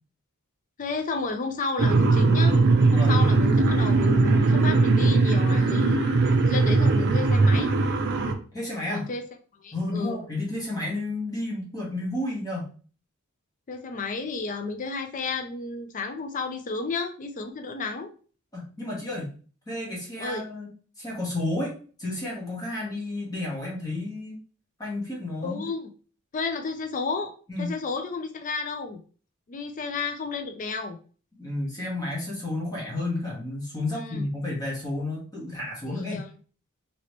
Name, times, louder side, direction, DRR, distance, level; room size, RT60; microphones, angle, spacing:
voice 1, 0.8-2.6 2.9-6.1 6.5-7.7 8.9-9.2 9.6-10.2 13.7-18.1 20.2-20.4 25.4-25.9 26.3-29.0 29.5-31.0 33.9-34.2 35.9-36.3, left 4 dB, 35° left, 6 dB, 0.4 m, -32 dB
sound 1, 1.8-8.3, right 3 dB, 50° right, 0.5 m, -20 dB
voice 2, 8.5-9.1 9.7-12.7 18.5-19.3 19.7-20.7 21.0-21.7 22.0-24.4 24.8-25.7 27.5-27.7 31.4-36.3, left 2 dB, 15° left, -4 dB, 1.0 m, -31 dB
2.9 x 2.9 x 2.9 m, 0.39 s
head